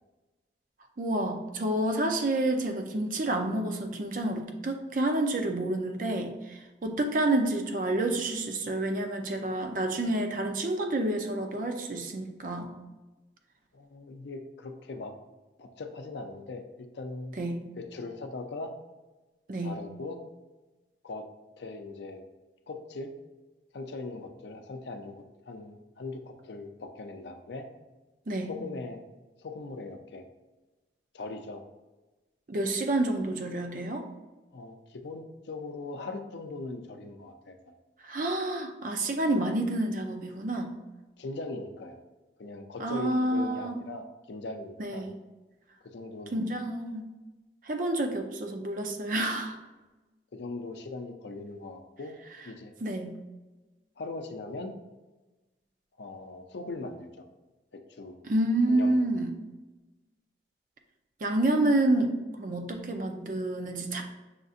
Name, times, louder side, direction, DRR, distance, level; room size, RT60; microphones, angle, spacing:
voice 1, 1.0-12.7 17.4-17.6 19.5-19.8 28.3-28.5 32.5-34.0 38.0-40.7 42.8-43.8 44.8-45.1 46.3-47.0 47.7-49.6 52.8-53.1 58.2-59.3 61.2-62.1 62.4-64.0, right 1 dB, 45° right, 4 dB, 0.5 m, -29 dB
voice 2, 13.7-15.1 15.6-17.4 17.7-18.7 19.6-20.2 21.0-21.3 21.6-22.2 22.7-23.1 23.7-27.7 28.4-29.0 29.4-30.3 31.1-31.6 34.5-37.7 41.2-42.0 42.4-45.0 45.8-46.3 50.3-52.2 52.4-52.7 54.0-54.7 56.0-57.1 57.7-58.2 58.7-59.0, left 3 dB, 75° left, 6 dB, 0.5 m, -40 dB
6.4 x 2.6 x 2.4 m, 1.1 s
head